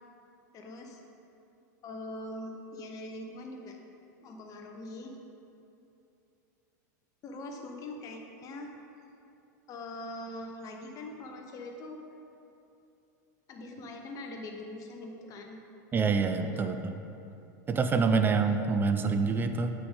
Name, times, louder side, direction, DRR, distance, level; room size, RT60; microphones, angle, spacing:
voice 1, 0.5-1.0 1.8-3.8 4.2-5.1 7.2-8.7 9.7-12.0 13.5-15.6, left 2 dB, 35° left, 3 dB, 1.0 m, -42 dB
voice 2, 15.9-17.0 17.7-19.7, right 4 dB, 20° right, 7 dB, 0.4 m, -26 dB
7.8 x 5.9 x 3.6 m, 2.8 s
hypercardioid pair, 120°, 10 cm